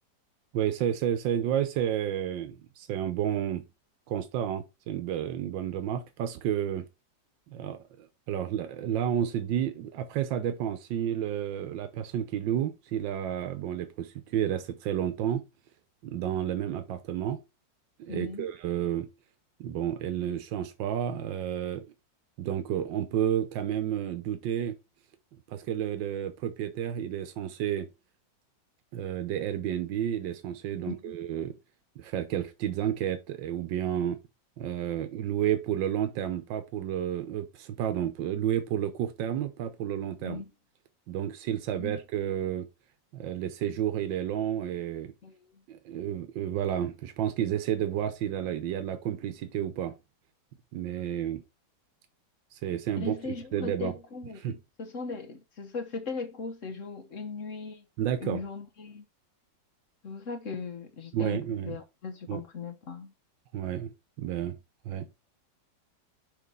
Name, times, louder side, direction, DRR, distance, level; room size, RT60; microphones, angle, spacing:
voice 1, 0.5-3.6 4.1-6.9 7.5-7.8 8.3-15.4 16.0-17.4 18.0-19.1 19.6-21.9 22.4-24.8 25.5-27.9 28.9-31.5 32.0-34.2 34.6-40.4 41.1-42.7 43.1-45.1 45.7-49.9 50.7-51.4 52.5-53.1 53.5-53.9 54.4-54.6 58.0-58.4 61.1-61.8 62.3-62.4 63.5-64.6 64.8-65.1, right 10 dB, 90° right, 1.5 m, -31 dB
voice 2, 18.1-18.5 30.8-31.1 40.2-40.5 41.8-42.0 45.2-45.6 53.0-54.4 54.8-57.8 58.2-59.1 60.0-63.1, left 4 dB, 50° left, 1.3 m, -38 dB
5.9 x 3.9 x 5.3 m
omnidirectional pair, 2.0 m